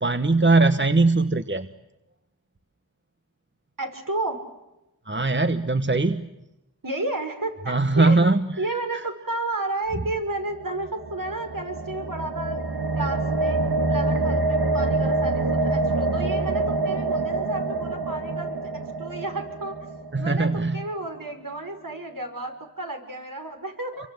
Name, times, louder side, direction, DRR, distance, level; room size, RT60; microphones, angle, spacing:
voice 1, 0.0-1.7 5.1-6.3 7.7-8.5 8.9-9.0 20.1-20.8, right 3 dB, 30° right, 10 dB, 1.2 m, -20 dB
voice 2, 3.8-4.4 6.8-8.2 8.6-12.7 13.0-13.6 13.9-18.6 19.0-19.8 20.2-24.1, right 2 dB, 60° right, 4 dB, 5.8 m, -32 dB
sound 1, 10.6-20.8, right 2 dB, 80° right, 1.9 m, -26 dB
29.0 x 24.0 x 8.0 m, 0.94 s
wide cardioid pair, 55°, 38 cm